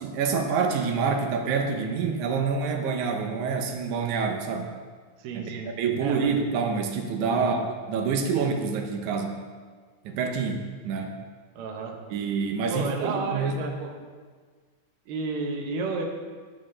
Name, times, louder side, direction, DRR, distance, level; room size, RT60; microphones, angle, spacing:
voice 1, 0.0-4.7 5.5-9.4 10.1-11.2 12.1-14.0, right 5 dB, 85° right, 4 dB, 2.2 m, -27 dB
voice 2, 5.2-5.7 6.0-6.3 7.4-7.5 11.5-12.0 12.7-13.7 15.1-16.0, right 3 dB, 65° right, 2 dB, 1.4 m, -31 dB
10.5 x 6.5 x 3.2 m, 1.5 s
omnidirectional pair, 3.4 m